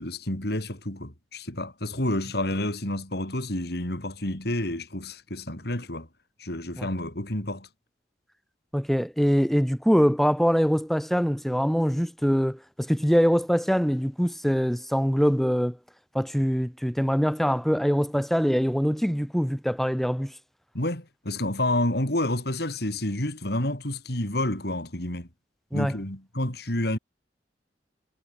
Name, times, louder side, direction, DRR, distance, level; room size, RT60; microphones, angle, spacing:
voice 1, 0.0-6.1 6.4-7.7 20.7-25.3 25.7-27.0, left 1 dB, 65° left, 4.5 m, -29 dB
voice 2, 8.7-15.8 16.1-20.3 25.7-25.9, equal, ahead, 3.1 m, -23 dB
head